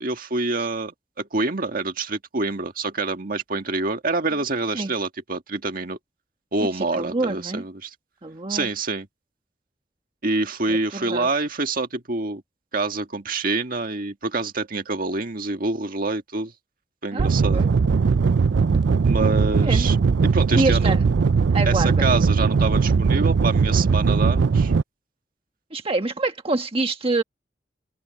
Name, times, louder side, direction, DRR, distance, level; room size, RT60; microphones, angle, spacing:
voice 1, 0.0-6.0 6.5-7.9 8.5-9.1 10.2-12.4 12.7-16.5 17.0-17.6 19.0-20.0 20.2-20.9 21.6-24.7, right 3 dB, 55° right, 1.8 m, -26 dB
voice 2, 6.8-7.6 8.2-8.7 10.7-11.3 17.1-17.7 19.6-19.9 20.5-21.1 21.5-22.0 25.7-27.2, right 2 dB, 30° right, 1.4 m, -26 dB
sound 1, 17.2-24.8, right 5 dB, 90° right, 0.5 m, -19 dB
open air
head